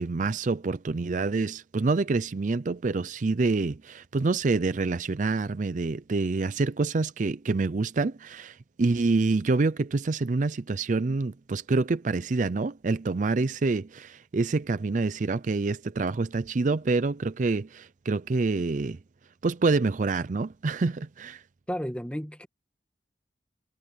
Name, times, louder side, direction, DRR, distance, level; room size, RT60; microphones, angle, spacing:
voice 1, 0.0-19.0 19.4-21.4, right 3 dB, 45° right, 0.5 m, -27 dB
voice 2, 21.7-22.5, equal, 5° left, 2.0 m, -32 dB
head